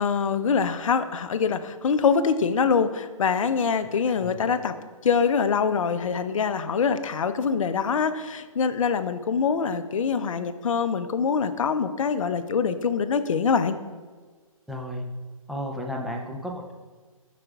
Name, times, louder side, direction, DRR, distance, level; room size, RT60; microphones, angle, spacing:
voice 1, 0.0-4.7 5.0-13.7, left 6 dB, 65° left, 10 dB, 0.6 m, -24 dB
voice 2, 14.7-15.0 15.5-16.7, equal, ahead, -1 dB, 0.5 m, -33 dB
13.0 x 5.0 x 2.4 m, 1.4 s
hypercardioid pair, 140°, 18 cm